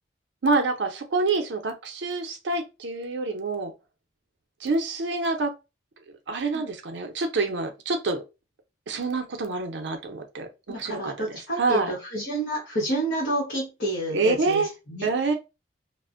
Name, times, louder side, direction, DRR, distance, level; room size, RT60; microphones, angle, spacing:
voice 1, 0.4-3.7 4.6-5.5 6.3-8.2 8.9-12.0 14.1-14.7 15.0-15.3, right 3 dB, 75° right, 0.5 m, -27 dB
voice 2, 10.7-14.6 14.9-15.1, right 1 dB, 65° left, 1.1 m, -29 dB
2.4 x 2.1 x 2.5 m
head